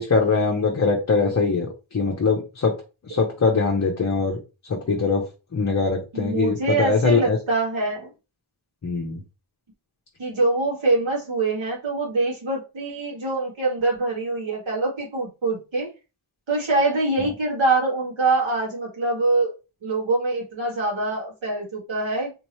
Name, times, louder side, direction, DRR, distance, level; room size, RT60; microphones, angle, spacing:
voice 1, 0.0-2.7 3.1-4.4 4.7-5.2 5.5-7.4 8.8-9.2, left 4 dB, 35° left, 0.7 m, -22 dB
voice 2, 6.1-8.1 10.2-15.9 16.5-19.5 19.8-22.3, right 2 dB, 75° right, 1.9 m, -24 dB
3.5 x 3.0 x 3.0 m
wide cardioid pair, 135°, 47 cm